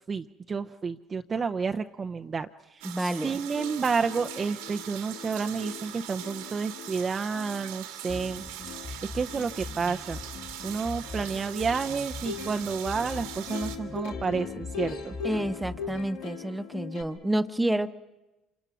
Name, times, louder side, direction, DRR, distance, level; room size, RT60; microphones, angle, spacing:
voice 1, 0.1-2.9 3.2-8.4 9.1-10.2 10.6-15.1, right 5 dB, 35° right, 7 dB, 0.7 m, -30 dB
voice 2, 2.8-3.4 15.2-17.9, right 1 dB, 10° right, 10 dB, 1.1 m, -29 dB
sound 1, 2.8-13.8, right 11 dB, 85° right, 1.9 m, -41 dB
Plucked string instrument, 3.1-3.2 3.5-17.0, left 7 dB, 75° left, 2.2 m, -41 dB
sound 2, 8.1-16.1, left 4 dB, 25° left, 1.8 m, -42 dB
27.0 x 25.0 x 6.1 m, 1.1 s
hypercardioid pair, 70°, 0 cm